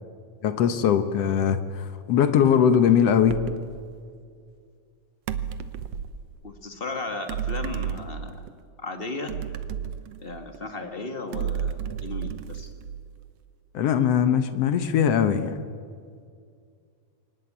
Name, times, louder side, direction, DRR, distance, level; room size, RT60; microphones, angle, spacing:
voice 1, 0.4-3.4 13.7-15.5, left 8 dB, 65° left, 10 dB, 1.9 m, -21 dB
sound 1, 3.3-3.7 5.3-6.2 7.3-8.5 9.3-10.6 11.3-13.2, right 9 dB, 65° right, 1.8 m, -32 dB
voice 2, 6.4-8.5 8.8-9.3 10.2-12.7, left 3 dB, 25° left, 6 dB, 1.3 m, -35 dB
22.5 x 19.0 x 8.8 m, 2.2 s
omnidirectional pair, 3.5 m